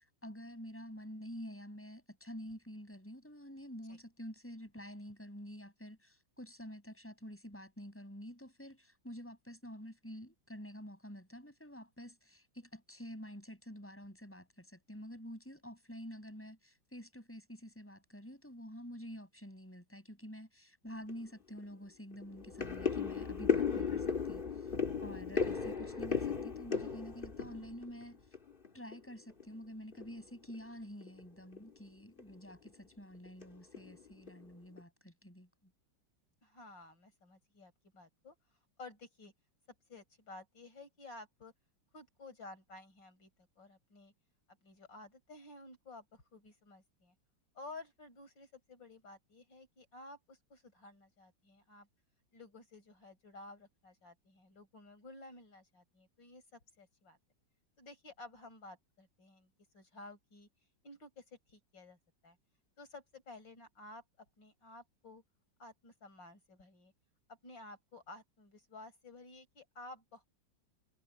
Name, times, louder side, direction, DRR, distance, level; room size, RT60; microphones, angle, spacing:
voice 1, 0.0-24.7 25.0-28.2 28.7-35.5, equal, 5° left, 7.8 m, -49 dB
sound 1, 21.1-21.2 21.6-21.7 22.1-28.7 28.9-29.5 29.9-30.1 30.4-30.5 31.0-31.2 31.5-31.7 32.2-32.7 33.3-33.4 33.7-34.4 34.8-34.9, left 6 dB, 30° left, 2.2 m, -35 dB
voice 2, 23.6-24.3 36.4-38.4 38.8-39.3 39.9-41.5 41.9-43.3 43.6-44.1 44.6-47.2 47.5-51.9 52.3-57.2 57.8-60.5 60.8-62.0 62.2-62.4 62.8-65.2 65.6-66.9 67.3-70.3, left 2 dB, 75° left, 6.4 m, -53 dB
omnidirectional pair, 2.0 m